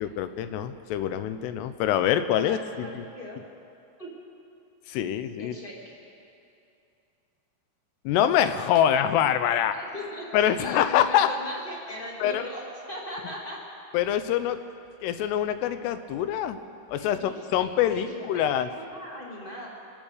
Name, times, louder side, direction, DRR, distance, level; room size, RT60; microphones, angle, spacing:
voice 1, 0.0-3.1 4.9-5.6 8.1-9.8 10.3-11.3 12.2-12.4 13.9-14.6 15.0-16.6 16.9-18.7, left 10 dB, 90° left, 11 dB, 2.8 m, -25 dB
voice 2, 5.4-5.9 9.7-13.6 17.0-19.7, left 1 dB, 20° left, -3 dB, 1.4 m, -39 dB
24.5 x 8.9 x 6.5 m, 2.6 s
omnidirectional pair, 4.7 m